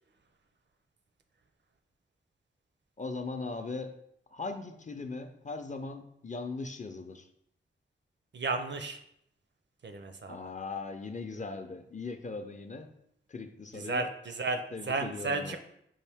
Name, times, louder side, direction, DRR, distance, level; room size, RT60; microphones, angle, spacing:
voice 1, 3.0-4.0 4.3-7.3 10.3-12.9 13.3-14.1 14.7-15.6, left 3 dB, 35° left, 6 dB, 0.5 m, -39 dB
voice 2, 8.3-9.0 9.8-10.4 13.7-14.6 14.9-15.6, right 3 dB, 60° right, 6 dB, 0.5 m, -33 dB
5.5 x 2.6 x 3.4 m, 0.73 s
cardioid pair, 55°, 21 cm